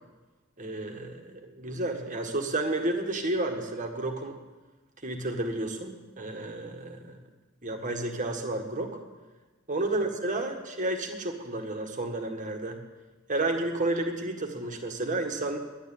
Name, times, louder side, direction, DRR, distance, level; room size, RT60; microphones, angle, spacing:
voice 1, 0.6-4.4 5.0-7.2 7.6-9.0 9.7-12.8 13.3-15.6, right 2 dB, 35° right, 4 dB, 1.7 m, -31 dB
11.0 x 9.5 x 9.9 m, 1.3 s
head